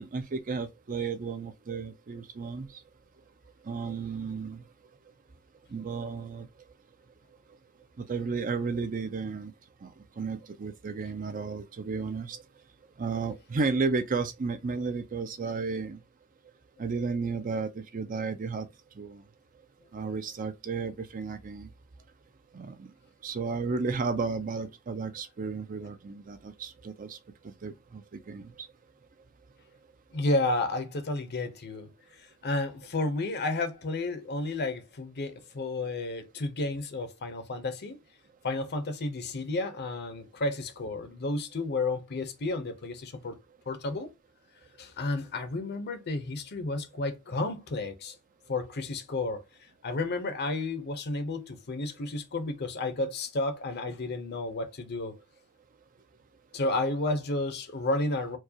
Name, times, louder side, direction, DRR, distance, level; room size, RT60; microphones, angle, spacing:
voice 1, 0.0-2.7 3.7-4.6 5.7-6.5 8.0-9.5 9.8-9.9 10.2-12.4 13.0-16.0 16.8-18.7 19.0-19.2 19.9-21.7 22.5-22.9 23.2-27.2 27.6-28.0 28.3-28.7, right 4 dB, 40° right, 0.5 m, -33 dB
voice 2, 30.1-31.9 32.4-38.0 38.4-43.4 43.7-44.1 44.8-48.1 48.5-49.4 49.8-55.2 56.5-58.4, left 2 dB, 50° left, 0.8 m, -31 dB
4.5 x 2.3 x 2.8 m
head